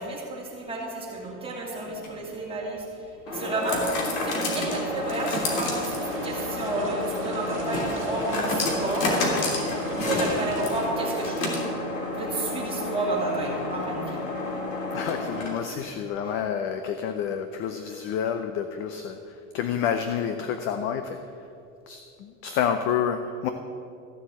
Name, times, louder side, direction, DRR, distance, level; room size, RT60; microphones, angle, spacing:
voice 1, 0.0-3.9 4.2-6.0 6.2-9.3 9.8-11.5 12.2-14.2, right 2 dB, 15° right, -3 dB, 2.6 m, -31 dB
sound 1, 1.8-15.8, left 1 dB, 80° left, 3.2 m, -30 dB
sound 2, 5.4-10.8, right 5 dB, 30° right, 1.8 m, -43 dB
voice 2, 14.9-21.2 21.9-23.5, left 8 dB, 30° left, 8 dB, 0.6 m, -29 dB
14.5 x 7.1 x 7.9 m, 2.5 s
supercardioid pair, 155°, 41 cm